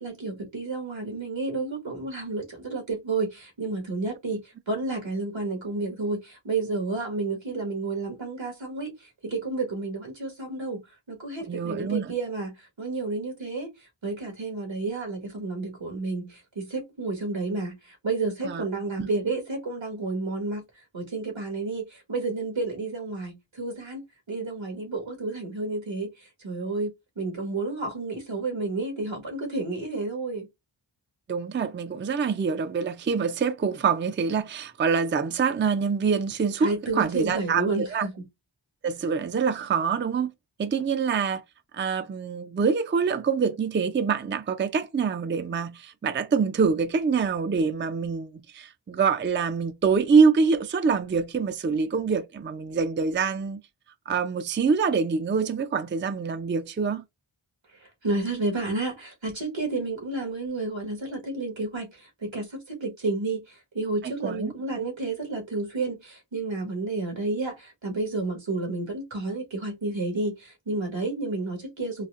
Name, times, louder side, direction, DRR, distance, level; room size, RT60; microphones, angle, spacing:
voice 1, 0.0-10.8 11.1-13.7 14.0-20.6 20.9-30.5 36.6-38.1 57.8-72.1, right 3 dB, 75° right, 1.4 m, -31 dB
voice 2, 11.5-12.1 18.4-18.6 19.0-19.1 31.3-38.1 38.8-40.3 40.6-41.4 41.7-53.6 54.1-57.0 64.0-64.5, right 5 dB, 25° right, 0.4 m, -25 dB
4.0 x 2.4 x 2.4 m
wide cardioid pair, 55°, 46 cm